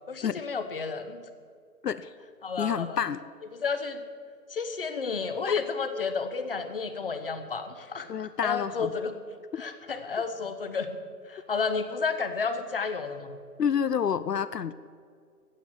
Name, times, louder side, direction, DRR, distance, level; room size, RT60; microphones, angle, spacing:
voice 1, 0.1-1.2 2.4-3.0 3.5-4.0 4.5-9.1 9.6-10.9 11.3-13.4, left 5 dB, 35° left, 10 dB, 0.9 m, -31 dB
voice 2, 2.6-3.2 8.1-8.9 9.5-9.6 13.6-14.7, left 8 dB, 75° left, 16 dB, 0.7 m, -28 dB
15.0 x 8.4 x 7.6 m, 2.1 s
hypercardioid pair, 165°, 48 cm